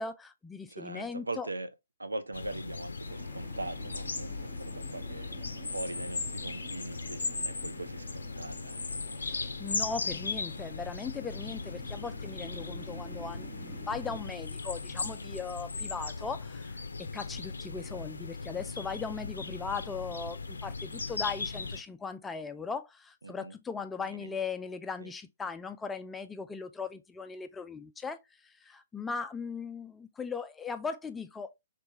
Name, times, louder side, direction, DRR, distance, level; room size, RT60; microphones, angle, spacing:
voice 1, 0.0-1.5 9.2-31.5, left 5 dB, 10° left, 0.3 m, -38 dB
voice 2, 0.7-1.7 2.0-5.3 5.7-8.9 9.4-9.5 23.2-23.6 24.0-24.4 25.0-25.1, right 2 dB, 75° right, 0.5 m, -41 dB
sound 1, 2.3-21.8, left 4 dB, 65° left, 0.5 m, -38 dB
sound 2, 3.0-14.2, right 7 dB, 30° right, 0.9 m, -51 dB
3.3 x 3.2 x 2.8 m
figure-of-eight pair, 125°, 0 cm